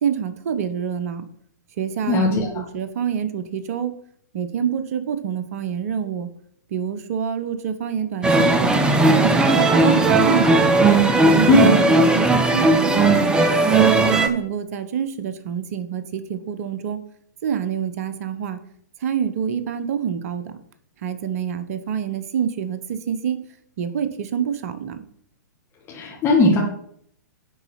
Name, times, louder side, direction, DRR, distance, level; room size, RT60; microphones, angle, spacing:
voice 1, 0.0-1.3 1.8-3.9 4.3-6.3 6.7-8.8 9.2-10.8 11.3-13.4 13.8-17.0 17.4-18.6 19.0-20.6 21.0-23.4 23.8-25.0, right 8 dB, 50° right, 11 dB, 1.0 m, -27 dB
voice 2, 2.1-2.5 11.5-11.7 25.9-26.6, left 2 dB, 25° left, -3 dB, 1.8 m, -17 dB
sound 1, 8.2-14.3, right 2 dB, 10° right, 0.8 m, -17 dB
9.6 x 4.1 x 5.7 m, 0.66 s
figure-of-eight pair, 115°, 10 cm